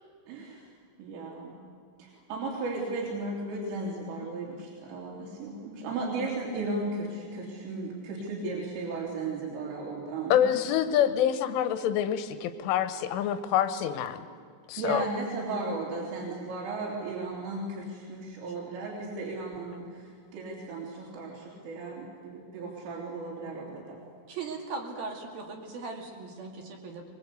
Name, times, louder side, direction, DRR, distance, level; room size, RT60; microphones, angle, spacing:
voice 1, 0.3-0.6 1.0-1.6 2.0-10.4 14.8-24.0, right 3 dB, 75° right, -5 dB, 5.5 m, -35 dB
voice 2, 10.3-14.2 14.7-15.1, left 10 dB, 75° left, 11 dB, 3.3 m, -26 dB
voice 3, 24.3-27.0, right 4 dB, 55° right, 2 dB, 3.5 m, -38 dB
23.0 x 22.5 x 8.3 m, 2.2 s
omnidirectional pair, 5.9 m